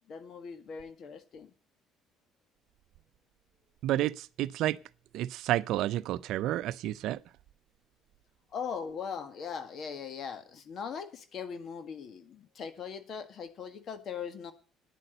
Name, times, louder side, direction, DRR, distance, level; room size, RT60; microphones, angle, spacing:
voice 1, 0.1-1.5 8.5-14.5, left 6 dB, 55° left, 1.7 m, -40 dB
voice 2, 3.8-4.8 5.1-7.2, right 14 dB, 70° right, 0.5 m, -30 dB
10.0 x 7.8 x 7.9 m
hypercardioid pair, 65°, 0 cm